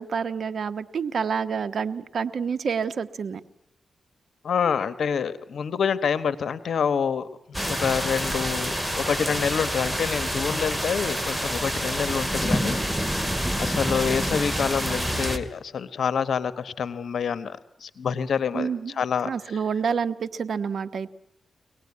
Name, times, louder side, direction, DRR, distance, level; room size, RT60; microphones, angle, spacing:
voice 1, 0.0-3.4 18.5-18.9 19.2-21.1, right 6 dB, 65° right, 11 dB, 1.1 m, -28 dB
voice 2, 4.4-13.3 13.6-19.3, left 7 dB, 75° left, 14 dB, 1.2 m, -27 dB
sound 1, 7.5-15.4, equal, 5° right, 2.4 m, -27 dB
24.5 x 18.5 x 9.7 m, 0.80 s
cardioid pair, 70°, 0 cm